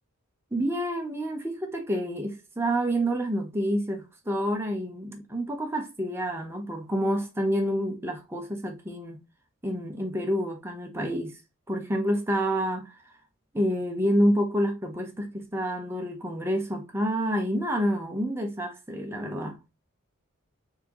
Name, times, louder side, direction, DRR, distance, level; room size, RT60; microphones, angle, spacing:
voice 1, 0.5-9.2 9.6-11.4 11.7-12.9 13.5-19.7, equal, 10° right, 0.7 m, -28 dB
4.1 x 3.6 x 2.9 m
head